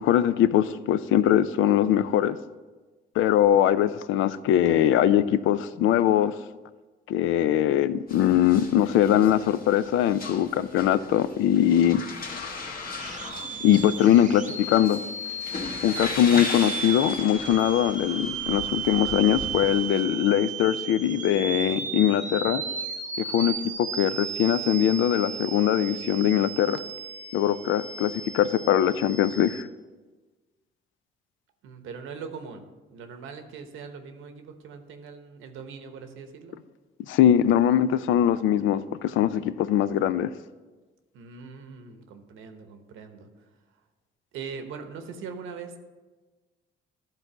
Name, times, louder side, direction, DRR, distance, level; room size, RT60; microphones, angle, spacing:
voice 1, 0.0-2.4 3.2-6.3 7.1-12.0 13.6-15.0 15.8-22.6 23.3-26.8 27.3-29.7 37.1-40.3, left 11 dB, 85° left, 15 dB, 0.4 m, -22 dB
sound 1, 8.1-20.0, left 3 dB, 50° left, 1.4 m, -38 dB
sound 2, 12.9-29.6, right 6 dB, 40° right, 0.8 m, -35 dB
voice 2, 31.6-36.6 41.1-43.3 44.3-45.8, right 5 dB, 85° right, 7 dB, 1.0 m, -41 dB
11.5 x 4.0 x 6.0 m, 1.3 s
cardioid pair, 90°, 20 cm